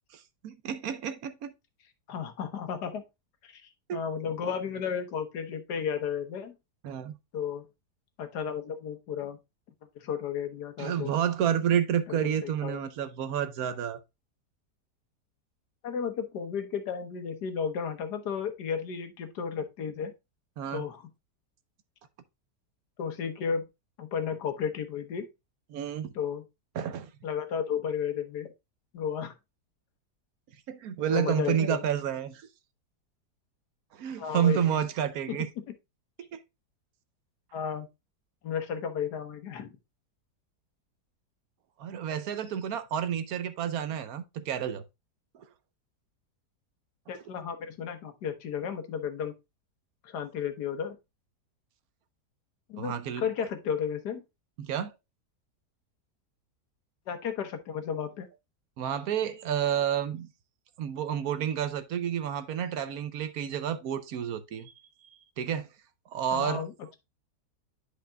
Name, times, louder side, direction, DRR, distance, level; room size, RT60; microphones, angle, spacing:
voice 1, 0.1-1.5 3.9-4.0 6.8-7.2 10.8-14.0 20.6-20.8 25.7-26.1 26.7-27.1 30.7-32.5 33.9-35.5 36.3-36.4 41.8-44.8 52.8-53.3 54.6-54.9 58.8-60.3 60.8-64.7 65.4-65.7 66.1-66.7, right 9 dB, 70° right, 1.1 m, -30 dB
voice 2, 2.1-3.0 3.4-3.6 3.9-6.5 7.3-7.6 8.2-9.4 10.0-11.1 12.1-12.8 15.8-20.1 20.7-21.0 23.0-23.6 24.0-25.3 26.1-26.4 27.2-28.5 28.9-29.3 31.1-31.8 34.2-34.8 35.3-35.4 37.5-37.9 38.4-39.7 47.1-49.3 50.0-51.0 52.7-54.2 57.1-58.3 66.3-66.7, left 7 dB, 80° left, 1.6 m, -33 dB
10.5 x 5.1 x 2.2 m
omnidirectional pair, 1.7 m